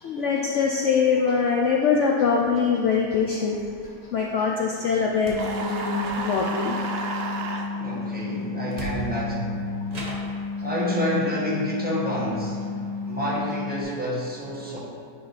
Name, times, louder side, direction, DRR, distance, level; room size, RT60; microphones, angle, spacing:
voice 1, 0.0-3.6 4.1-6.8, left 5 dB, 70° left, -1 dB, 0.7 m, -23 dB
sound 1, 5.2-5.5 6.0-6.6 8.2-8.3 8.7-9.3 9.9-10.4, right 2 dB, 35° right, 0.7 m, -37 dB
sound 2, 5.2-13.8, left 4 dB, 50° right, 1.6 m, -32 dB
sound 3, 5.4-7.7, right 3 dB, 75° right, 0.5 m, -31 dB
voice 2, 7.7-9.6 10.6-12.6 13.1-14.8, equal, 5° right, -7 dB, 1.1 m, -28 dB
9.4 x 3.3 x 4.1 m, 2.5 s
omnidirectional pair, 1.7 m